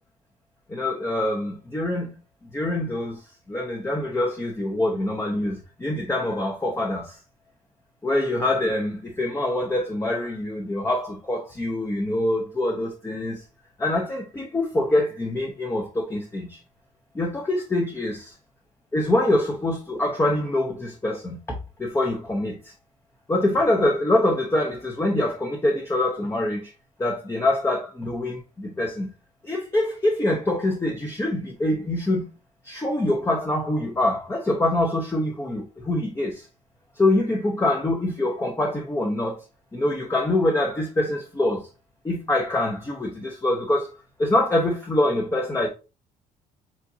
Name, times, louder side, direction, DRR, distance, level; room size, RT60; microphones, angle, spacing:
voice 1, 0.7-2.1 2.5-7.2 8.0-13.4 13.8-16.6 17.1-18.2 18.9-22.7 23.3-26.7 27.0-29.1 29.4-32.3 32.6-36.5 36.9-39.4 39.7-41.7 42.0-43.9 44.2-45.7, left 1 dB, 15° left, 0.8 m, -25 dB
7.3 x 2.6 x 2.7 m
cardioid pair, 110°, 17 cm